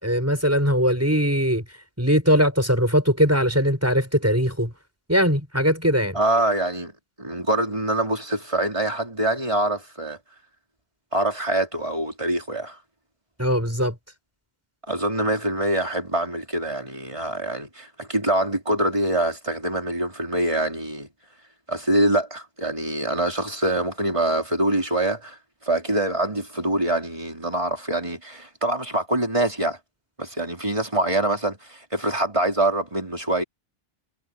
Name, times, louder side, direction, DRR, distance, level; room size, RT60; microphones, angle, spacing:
voice 1, 0.0-1.6 2.0-4.7 5.1-6.2 13.4-14.0, equal, 15° right, 6.9 m, -20 dB
voice 2, 6.1-6.9 7.2-10.2 11.1-12.8 14.9-21.1 21.7-29.8 30.2-33.4, right 1 dB, 30° right, 4.3 m, -24 dB
omnidirectional pair, 1.1 m